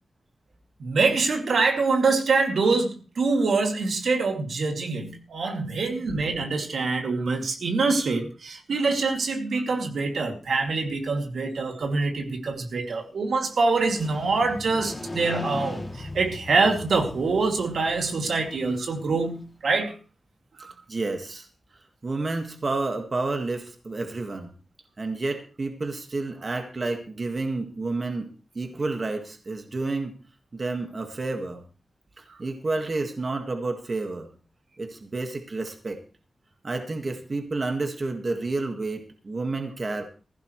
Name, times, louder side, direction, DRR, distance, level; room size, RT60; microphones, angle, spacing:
voice 1, 0.8-19.9 20.6-20.7, right 3 dB, 85° right, 2.5 m, -25 dB
Motorcycle, 13.5-19.4, left 1 dB, 15° left, 2.7 m, -39 dB
voice 2, 20.9-21.5 22.0-24.5 25.0-30.1 30.5-31.6 32.2-34.3 34.8-36.0 36.6-40.0, right 3 dB, 35° right, 1.7 m, -30 dB
16.0 x 15.5 x 3.2 m
wide cardioid pair, 170°, 0 cm